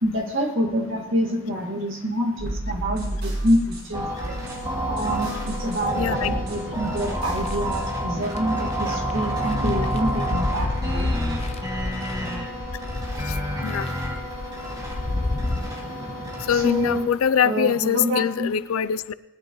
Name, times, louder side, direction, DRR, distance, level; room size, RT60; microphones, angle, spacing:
voice 1, 0.0-4.4 4.9-11.1 16.5-17.1 17.4-18.5, equal, 65° right, 0 dB, 2.1 m, -26 dB
sound 1, 2.4-7.8, right 1 dB, 85° right, 4.3 m, -33 dB
sound 2, 3.9-17.0, equal, 20° right, 2.3 m, -29 dB
voice 2, 5.1-5.5 5.9-6.3 13.6-13.9 16.5-19.1, left 8 dB, 85° left, 17 dB, 0.4 m, -23 dB
sound 3, 6.4-7.5 8.2-8.4 8.7-15.6, left 2 dB, 30° left, 0.5 m, -30 dB
19.5 x 10.0 x 3.1 m, 1.1 s
head